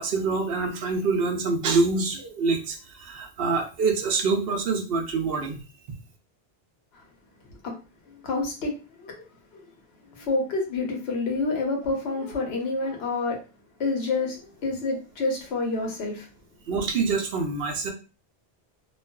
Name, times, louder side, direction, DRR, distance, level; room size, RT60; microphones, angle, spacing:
voice 1, 0.0-5.6 16.7-17.9, right 4 dB, 70° right, 0.8 m, -25 dB
voice 2, 8.1-9.2 9.5-9.7 10.1-13.4 13.8-16.3, left 3 dB, 80° left, 1.0 m, -28 dB
2.4 x 2.3 x 2.2 m
omnidirectional pair, 1.0 m